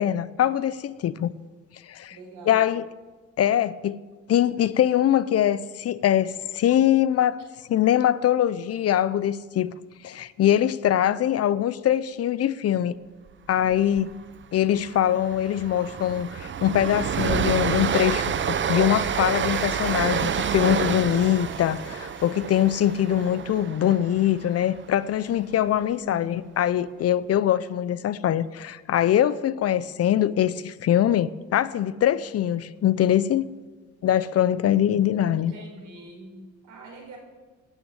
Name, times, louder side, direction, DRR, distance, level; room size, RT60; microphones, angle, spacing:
voice 1, 0.0-1.3 1.9-2.2 2.5-2.9 3.4-4.0 4.3-7.4 7.7-9.7 10.0-13.0 13.5-14.1 14.5-33.5 34.0-35.5, left 11 dB, 55° left, 0.5 m, -23 dB
voice 2, 2.1-2.7 25.8-26.4 35.3-37.2, right 2 dB, 80° right, 4.7 m, -44 dB
Train, 13.7-14.0 14.3-14.4 14.8-25.0, right 7 dB, 40° right, 0.6 m, -28 dB
sound 1, 19.3-25.3 25.5-25.6 25.9-26.0 26.5-26.6, equal, 5° left, 2.2 m, -48 dB
13.0 x 6.2 x 9.0 m
cardioid pair, 90°, 30 cm